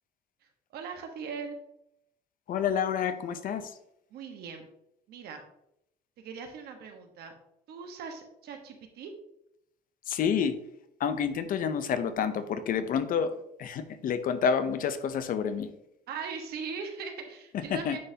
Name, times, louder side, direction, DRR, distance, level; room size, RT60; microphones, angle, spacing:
voice 1, 0.7-1.6 4.1-4.6 5.1-5.4 6.2-7.3 7.7-9.1 16.1-18.0, right 6 dB, 70° right, 4 dB, 1.2 m, -40 dB
voice 2, 2.5-3.8 10.1-10.6 11.0-15.7 17.5-18.0, left 7 dB, 55° left, 11 dB, 0.6 m, -29 dB
9.4 x 4.0 x 2.8 m, 0.79 s
cardioid pair, 110°, 17 cm